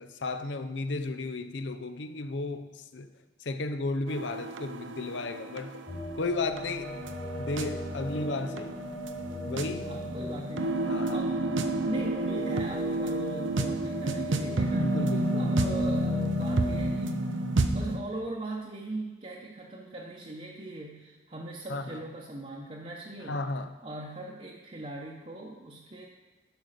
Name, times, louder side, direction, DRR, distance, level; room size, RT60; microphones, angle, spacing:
voice 1, 0.0-3.1 3.4-5.8 6.1-7.0 7.4-8.8 9.4-9.9 10.9-11.2 14.7-15.5 21.7-22.0 23.3-23.7, left 3 dB, 75° left, 10 dB, 0.7 m, -34 dB
sound 1, 4.1-18.0, right 1 dB, 90° right, 0.7 m, -31 dB
sound 2, 5.9-17.0, equal, 20° left, 0.5 m, -38 dB
voice 2, 9.9-11.5 11.8-17.2 17.7-23.4 23.8-26.1, right 2 dB, 35° right, -3 dB, 0.9 m, -40 dB
11.5 x 5.3 x 6.6 m, 1.3 s
head